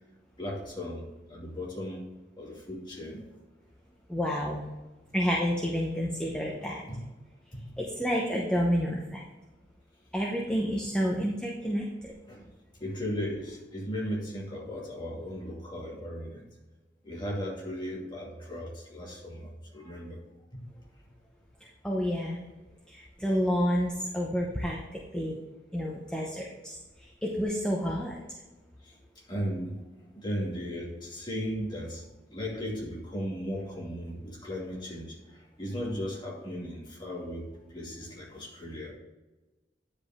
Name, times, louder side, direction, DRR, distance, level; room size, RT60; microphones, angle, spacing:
voice 1, 0.4-2.1 2.4-3.2 6.9-7.0 7.5-7.8 12.3-12.5 12.8-16.5 17.0-20.2 20.5-20.6 28.8-29.0 29.3-29.8 30.1-39.0, equal, 25° left, -4 dB, 2.4 m, -36 dB
voice 2, 4.1-4.7 5.1-6.8 7.8-9.2 10.1-12.1 21.8-22.4 22.9-25.4 25.7-28.1, equal, 5° left, -3 dB, 0.9 m, -29 dB
10.0 x 5.2 x 3.7 m, 1.2 s
head